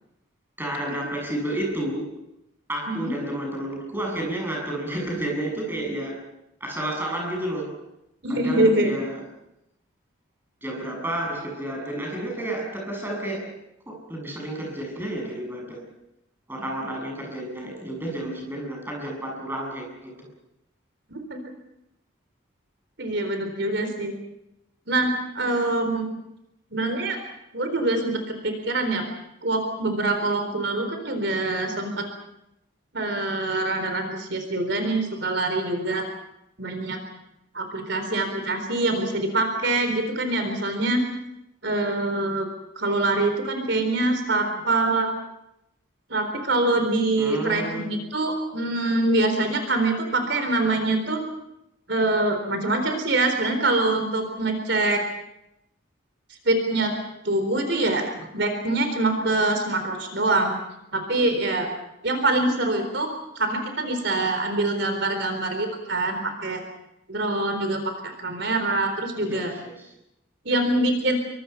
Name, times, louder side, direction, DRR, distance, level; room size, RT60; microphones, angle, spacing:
voice 1, 0.6-2.2 2.7-6.3 6.6-7.8 8.3-9.2 10.6-13.6 13.9-15.8 16.5-20.3 47.2-48.0 69.2-69.9, right 1 dB, 10° right, 0 dB, 7.2 m, -31 dB
voice 2, 8.2-8.9 21.1-21.4 23.0-24.1 24.9-26.1 26.7-27.2 27.5-29.0 29.4-32.0 32.9-36.1 36.6-37.0 37.5-41.0 41.6-42.5 42.8-45.1 46.1-51.3 51.9-55.0 56.4-56.9 57.2-60.6 60.9-61.7 62.0-63.1 63.4-66.6 67.1-69.5 70.5-71.1, right 2 dB, 60° right, 6 dB, 4.1 m, -24 dB
27.0 x 24.5 x 5.9 m, 0.84 s
head